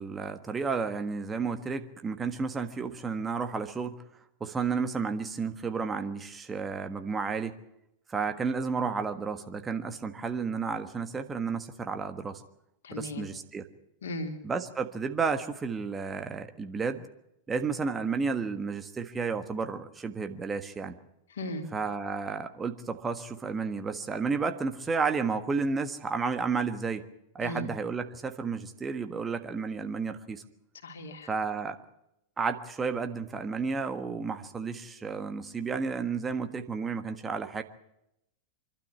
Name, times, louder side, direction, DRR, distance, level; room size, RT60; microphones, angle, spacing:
voice 1, 0.0-3.9 4.4-7.5 8.1-12.4 12.9-13.7 14.4-17.1 17.5-21.0 21.7-27.0 27.3-30.4 31.3-31.8 32.4-37.6, right 5 dB, 15° right, 7 dB, 1.5 m, -32 dB
voice 2, 12.8-13.3 14.0-14.4 21.3-21.6 27.4-27.7 30.8-31.3, left 1 dB, 65° left, 4 dB, 3.2 m, -37 dB
26.0 x 12.5 x 9.6 m, 0.83 s
figure-of-eight pair, 90°, 0 cm